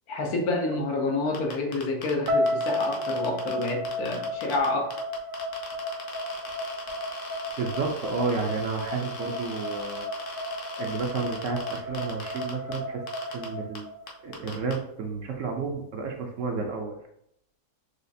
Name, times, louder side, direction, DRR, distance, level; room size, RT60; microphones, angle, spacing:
voice 1, 0.1-5.0, left 2 dB, 75° left, 1 dB, 1.3 m, -28 dB
sound 1, 1.3-4.7 4.9-12.8 13.1-13.4 13.7-13.8 14.1-14.7, left 4 dB, 60° left, 1.0 m, -40 dB
sound 2, 2.3-14.4, left 1 dB, 85° right, 1.5 m, -33 dB
voice 2, 7.6-13.0 13.3-13.9 14.2-17.0, right 4 dB, 65° right, 2 dB, 0.8 m, -31 dB
6.2 x 2.4 x 2.6 m, 0.76 s
omnidirectional pair, 1.6 m